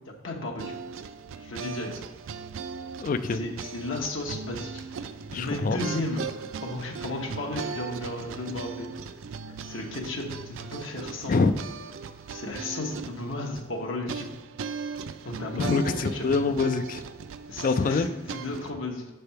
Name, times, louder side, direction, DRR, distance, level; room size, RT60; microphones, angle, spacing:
voice 1, 0.1-0.8 1.4-2.0 3.3-8.9 9.7-11.3 12.3-14.3 15.2-16.3 17.5-19.0, left 2 dB, 75° left, 0 dB, 1.0 m, -34 dB
sound 1, 0.6-18.7, right 5 dB, 75° right, 0.4 m, -38 dB
voice 2, 3.0-3.4 5.3-5.8 11.3-11.5 15.6-17.0 17.6-18.1, left 4 dB, 40° left, 10 dB, 0.3 m, -25 dB
6.5 x 3.4 x 5.6 m, 1.2 s
head